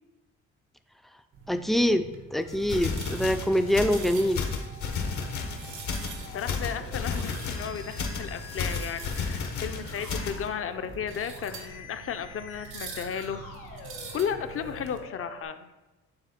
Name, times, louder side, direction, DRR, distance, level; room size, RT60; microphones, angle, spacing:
sound 1, 1.3-15.0, right 5 dB, 85° right, 1.3 m, -45 dB
voice 1, 1.5-4.5, equal, ahead, 8 dB, 0.4 m, -25 dB
Musical instrument, 2.4-15.4, left 3 dB, 90° left, 2.2 m, -47 dB
sound 2, 2.5-10.5, left 5 dB, 70° left, 1.1 m, -33 dB
voice 2, 6.0-13.4 14.1-15.7, left 7 dB, 45° left, 9 dB, 0.6 m, -34 dB
8.9 x 3.7 x 4.2 m, 1.1 s
cardioid pair, 90°, 30 cm